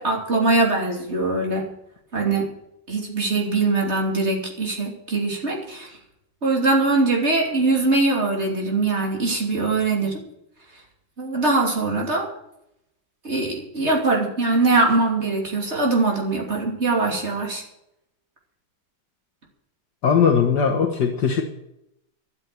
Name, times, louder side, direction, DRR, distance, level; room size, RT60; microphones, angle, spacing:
voice 1, 0.0-1.7 2.1-2.5 2.9-6.0 6.4-10.2 11.2-12.3 13.2-17.6, right 3 dB, 35° right, 0 dB, 3.2 m, -22 dB
voice 2, 20.0-21.4, left 6 dB, 60° left, 1 dB, 1.8 m, -19 dB
12.5 x 8.4 x 9.1 m, 0.82 s
omnidirectional pair, 2.0 m